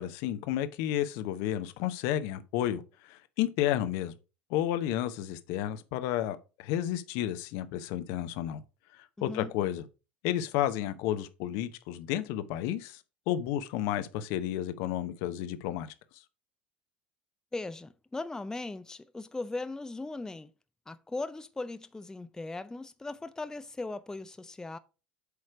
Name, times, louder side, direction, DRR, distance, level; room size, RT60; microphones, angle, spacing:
voice 1, 0.0-4.1 4.5-8.6 9.2-9.8 10.2-13.0 13.3-15.9, left 12 dB, 65° left, 0.7 m, -31 dB
voice 2, 9.2-9.5 17.5-20.5 20.9-24.8, left 2 dB, 10° left, 0.5 m, -38 dB
8.1 x 3.2 x 4.9 m
hypercardioid pair, 75°, 6 cm